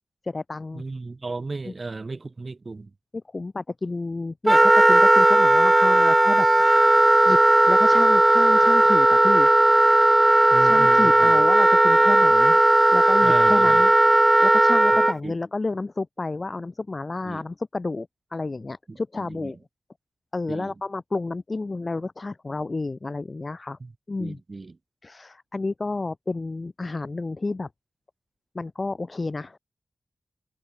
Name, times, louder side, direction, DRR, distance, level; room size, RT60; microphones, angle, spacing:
voice 1, 0.2-0.8 1.7-1.8 3.3-6.9 7.3-9.5 10.6-12.6 12.9-13.9 14.4-19.6 20.3-23.8 24.1-24.4 25.0-27.7 28.5-29.6, left 3 dB, 40° left, 2.7 m, -31 dB
voice 2, 0.7-2.9 10.5-11.4 13.2-13.9 14.9-15.3 17.2-17.4 18.9-19.5 20.5-20.7 23.8-23.9 24.2-24.8, right 3 dB, 45° right, 3.2 m, -35 dB
Wind instrument woodwind instrument, 4.5-15.1, right 1 dB, 20° right, 0.4 m, -16 dB
cardioid pair, 65°, 0 cm